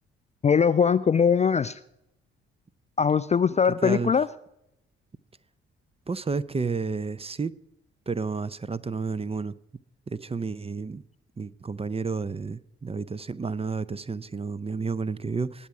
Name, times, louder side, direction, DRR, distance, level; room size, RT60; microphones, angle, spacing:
voice 1, 0.4-1.8 3.0-4.3, left 6 dB, 25° left, 16 dB, 0.4 m, -21 dB
voice 2, 3.8-4.1 6.1-7.6 8.1-9.5 10.1-11.0 11.4-15.7, right 4 dB, 20° right, 19 dB, 0.6 m, -31 dB
20.0 x 7.2 x 4.8 m, 0.80 s
figure-of-eight pair, 40°, 29 cm